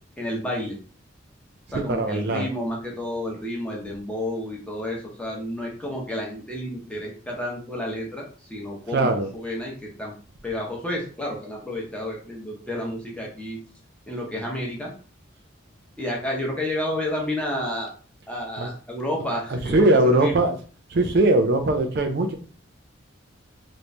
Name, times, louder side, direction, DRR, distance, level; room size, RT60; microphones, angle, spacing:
voice 1, 0.2-0.7 1.7-10.1 10.4-13.6 14.1-14.9 16.0-17.9 18.3-20.3, left 1 dB, 5° left, -3 dB, 0.9 m, -30 dB
voice 2, 1.7-2.5 8.9-9.3 18.6-18.7 19.5-20.6 20.9-22.4, right 2 dB, 55° right, 6 dB, 0.4 m, -20 dB
3.0 x 2.6 x 3.2 m, 0.40 s
head